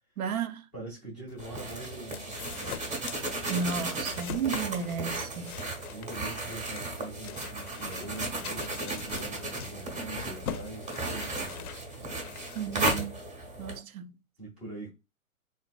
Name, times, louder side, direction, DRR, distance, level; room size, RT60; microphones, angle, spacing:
voice 1, 0.2-0.6 3.5-5.6 12.5-13.2 13.6-14.2, right 6 dB, 80° right, 0.6 m, -33 dB
voice 2, 0.7-2.8 5.2-11.7 14.4-14.9, right 2 dB, ahead, 0.3 m, -43 dB
sound 1, 1.3-13.8, left 8 dB, 80° left, 0.6 m, -43 dB
sound 2, 1.4-13.8, right 2 dB, 15° right, 0.7 m, -35 dB
3.8 x 2.5 x 2.2 m
hypercardioid pair, 125°, 43 cm